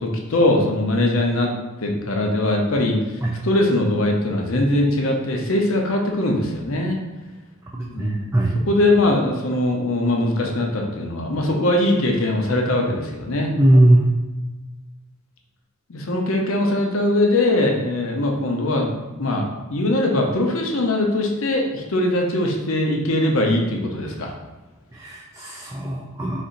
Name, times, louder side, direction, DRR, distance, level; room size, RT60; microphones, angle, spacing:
voice 1, 0.0-1.5 1.8-3.0 3.4-7.0 7.9-8.3 8.7-13.5 15.9-24.3, left 1 dB, 70° left, 1 dB, 0.7 m, -21 dB
voice 2, 7.7-8.5 13.6-14.1 24.9-26.4, right 1 dB, 15° right, -3 dB, 0.4 m, -19 dB
4.2 x 2.6 x 3.8 m, 1.2 s
head